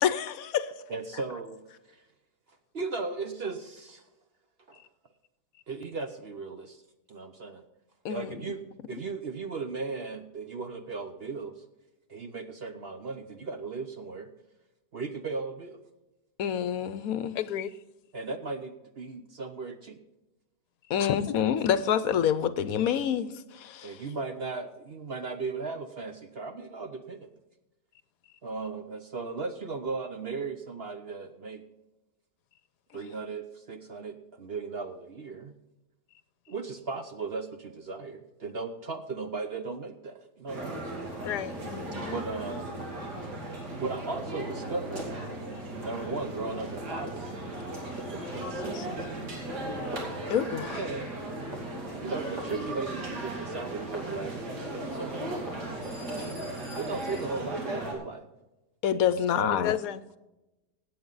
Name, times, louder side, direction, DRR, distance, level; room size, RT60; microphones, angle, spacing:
voice 1, 0.0-0.7 8.0-8.3 16.4-17.3 20.9-24.0 41.7-42.1 50.3-50.8 58.8-59.8, left 9 dB, 65° left, 14 dB, 1.0 m, -27 dB
voice 2, 0.9-2.0 2.7-4.1 4.7-4.8 5.7-6.8 7.1-7.6 8.1-11.6 12.1-14.3 14.9-15.8 18.1-20.0 23.8-27.3 28.4-31.6 32.9-35.5 36.5-40.8 42.1-42.7 43.8-45.1 45.8-47.3 48.1-49.0 50.7-51.1 52.0-55.5 56.7-58.3 59.1-59.7, right 4 dB, 50° right, 8 dB, 0.9 m, -37 dB
voice 3, 17.3-17.7 21.0-21.3 41.2-41.6 48.7-48.9 59.5-60.2, left 11 dB, 90° left, 15 dB, 1.3 m, -32 dB
sound 1, 40.5-57.9, right 1 dB, 85° right, 3.2 m, -36 dB
16.0 x 8.6 x 4.0 m, 0.99 s
omnidirectional pair, 1.7 m